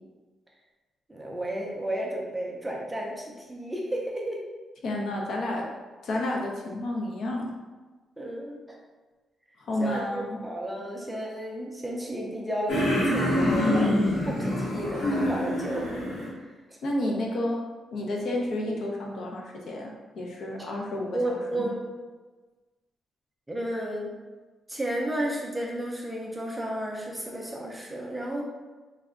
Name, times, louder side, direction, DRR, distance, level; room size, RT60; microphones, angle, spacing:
voice 1, 1.1-4.5 8.2-8.8 9.8-16.1 16.4-16.8 21.1-21.8 23.5-24.2 24.7-28.4, right 1 dB, 10° right, -2 dB, 0.4 m, -32 dB
voice 2, 4.8-5.7 6.0-7.6 9.6-10.4 16.8-17.6 17.9-21.7, left 1 dB, 60° left, -1 dB, 0.6 m, -31 dB
sound 1, 12.7-16.3, left 1 dB, 85° left, 1.2 m, -26 dB
3.4 x 2.1 x 3.6 m, 1.3 s
wide cardioid pair, 170°, 0 cm